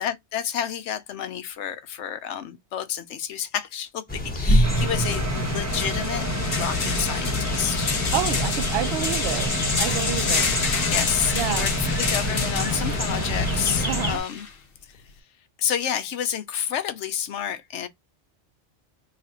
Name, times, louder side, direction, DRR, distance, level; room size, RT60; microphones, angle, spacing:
voice 1, 0.0-7.9 10.1-10.4 10.8-14.5 14.9-15.0 15.6-17.9, left 9 dB, 85° left, 1.0 m, -30 dB
sound 1, 4.1-14.2, left 1 dB, 10° left, 1.0 m, -27 dB
sound 2, 4.5-4.6 4.9-14.5, left 5 dB, 55° left, 0.9 m, -29 dB
sound 3, 4.6-14.1, equal, 20° right, 0.6 m, -30 dB
voice 2, 8.1-9.5 9.8-10.5 11.3-11.7 13.8-14.2, right 11 dB, 65° right, 0.7 m, -29 dB
3.3 x 2.5 x 4.2 m
omnidirectional pair, 1.2 m